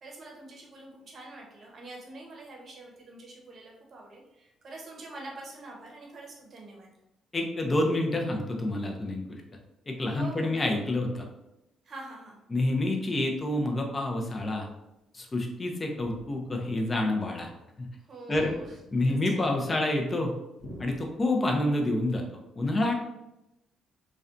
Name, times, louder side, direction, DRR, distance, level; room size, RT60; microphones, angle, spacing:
voice 1, 0.0-6.9 10.1-10.6 11.8-12.4 18.1-18.8 19.1-19.4, right 2 dB, 50° right, -1 dB, 0.7 m, -45 dB
voice 2, 7.3-9.4 9.9-11.3 12.5-14.7 15.1-17.5 17.8-17.9 18.3-18.5 18.9-20.3 20.8-22.3 22.6-22.9, left 1 dB, 30° left, 1 dB, 0.4 m, -28 dB
sound 1, 14.7-14.8 16.0-16.7 18.3-19.2 20.6-21.5, left 1 dB, 70° left, 0.7 m, -47 dB
2.5 x 2.2 x 2.4 m, 0.91 s
cardioid pair, 90°, 0 cm